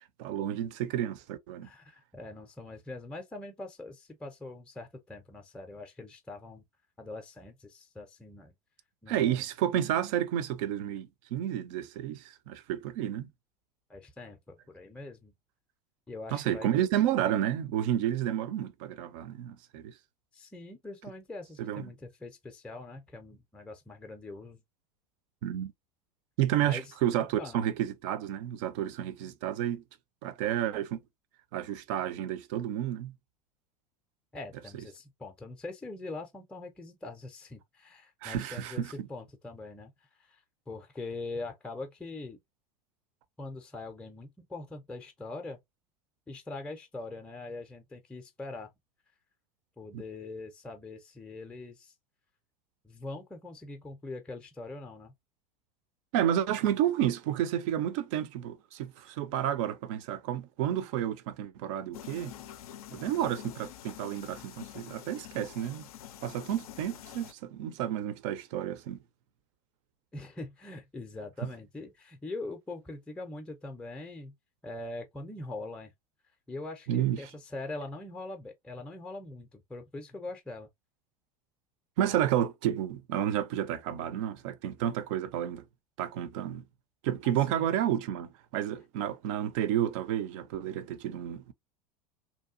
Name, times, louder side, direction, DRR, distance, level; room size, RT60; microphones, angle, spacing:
voice 1, 0.2-1.7 9.1-13.3 16.3-19.9 21.6-21.9 25.4-25.7 26.4-29.8 30.2-31.0 31.5-33.1 38.2-39.1 49.9-50.0 56.1-62.3 62.9-65.9 66.2-69.0 76.9-77.2 82.0-85.6 86.0-86.6 87.0-91.5, right 11 dB, 50° right, 0.5 m, -31 dB
voice 2, 1.6-6.6 7.0-8.5 9.0-9.4 13.9-15.3 16.1-16.7 20.3-24.6 26.6-27.6 34.3-42.4 43.4-45.6 46.3-48.7 49.8-51.9 52.8-55.1 70.1-74.3 74.6-75.9 76.5-80.7 87.2-87.7, left 2 dB, 5° left, 0.5 m, -43 dB
sound 1, 61.9-67.3, left 11 dB, 65° left, 0.4 m, -46 dB
2.7 x 2.2 x 2.4 m
figure-of-eight pair, 80°, 20 cm